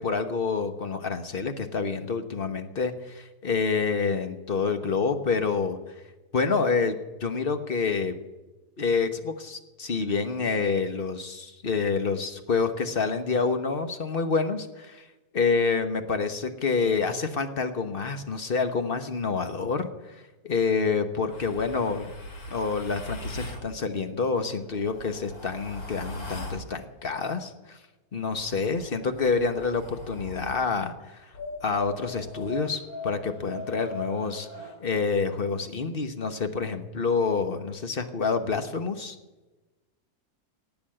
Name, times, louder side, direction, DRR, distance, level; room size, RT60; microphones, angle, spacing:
voice 1, 0.0-5.8 6.3-8.2 8.8-15.0 15.3-19.9 20.4-22.1 22.5-27.8 28.1-31.2 31.6-34.5 34.8-39.1, left 4 dB, 40° left, 8 dB, 1.2 m, -27 dB
sound 1, 21.3-23.7 24.6-26.7 28.3-30.7 31.3-34.8, left 1 dB, 70° left, 3.1 m, -40 dB
18.0 x 7.2 x 9.9 m, 1.1 s
omnidirectional pair, 1.7 m